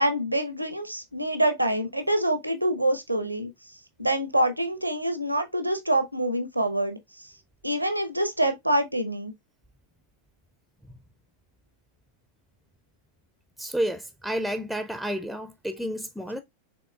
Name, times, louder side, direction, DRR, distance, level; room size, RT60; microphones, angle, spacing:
voice 1, 0.0-3.5 4.0-7.3 7.6-9.3, right 1 dB, 85° right, 0.6 m, -26 dB
voice 2, 13.6-16.4, equal, ahead, 0.4 m, -30 dB
6.0 x 3.6 x 2.2 m
figure-of-eight pair, 90°, 0 cm